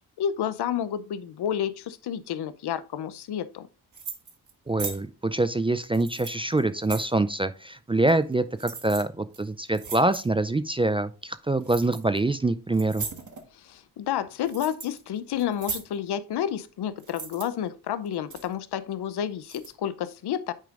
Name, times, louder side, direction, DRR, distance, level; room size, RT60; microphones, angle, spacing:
voice 1, 0.2-3.7 13.5-20.5, left 9 dB, 75° left, 0.6 m, -30 dB
sound 1, 3.9-4.5 4.8-5.0 5.8-7.1 8.1-8.3 8.6-9.0 9.3-9.4 9.7-10.3 11.6-12.2 12.7-13.5 14.1-15.0 15.3-15.9 17.0-17.4 18.1-18.5 19.4-19.7, right 5 dB, 50° right, 1.3 m, -38 dB
voice 2, 4.7-13.1, right 2 dB, 15° right, 0.3 m, -25 dB
9.1 x 5.1 x 2.4 m
cardioid pair, 75°, 39 cm